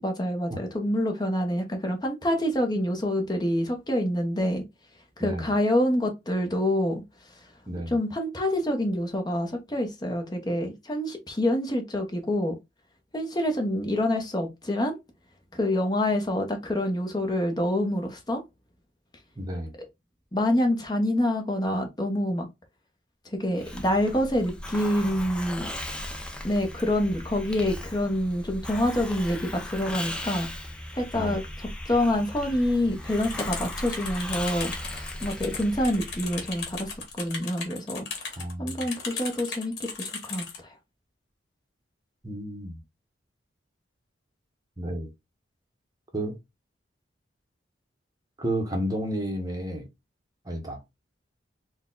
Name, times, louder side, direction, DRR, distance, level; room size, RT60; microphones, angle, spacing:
voice 1, 0.0-4.6 5.2-7.0 7.9-12.6 13.1-15.0 15.5-18.4 20.3-22.5 23.2-25.7 26.4-30.5 30.9-40.7, left 1 dB, 20° left, 0.9 m, -27 dB
voice 2, 19.4-19.7 31.1-31.4 38.4-38.8 42.2-42.7 44.8-45.1 46.1-46.4 48.4-49.9 50.5-50.8, right 1 dB, 20° right, 0.9 m, -31 dB
Hiss, 23.6-37.1, left 1 dB, 5° left, 0.5 m, -37 dB
sound 1, 33.2-40.6, left 5 dB, 55° left, 1.5 m, -37 dB
4.4 x 2.3 x 3.7 m
head